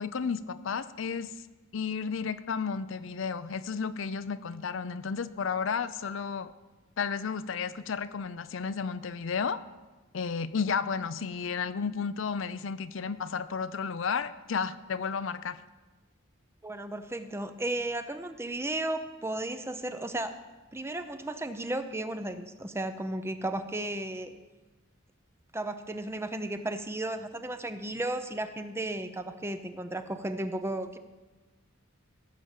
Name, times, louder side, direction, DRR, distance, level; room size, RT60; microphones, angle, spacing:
voice 1, 0.0-1.3 1.7-6.5 7.0-9.6 10.1-15.6, left 5 dB, 70° left, 13 dB, 0.5 m, -32 dB
voice 2, 16.6-20.4 20.7-24.3 25.5-31.0, right 1 dB, 15° right, 9 dB, 0.6 m, -34 dB
16.5 x 7.3 x 6.6 m, 1.2 s
head